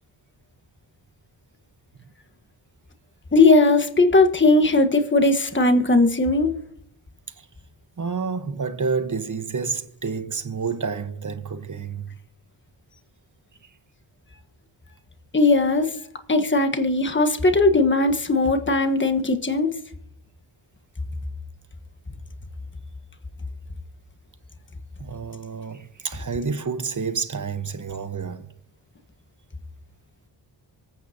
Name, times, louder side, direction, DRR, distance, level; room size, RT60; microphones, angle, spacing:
voice 1, 3.3-6.5 15.3-15.9 16.3-19.7, left 2 dB, 25° left, 1.5 m, -18 dB
voice 2, 8.0-12.1 25.0-28.5, right 5 dB, 40° right, 1.3 m, -29 dB
24.5 x 8.8 x 2.9 m
supercardioid pair, 40°, 48 cm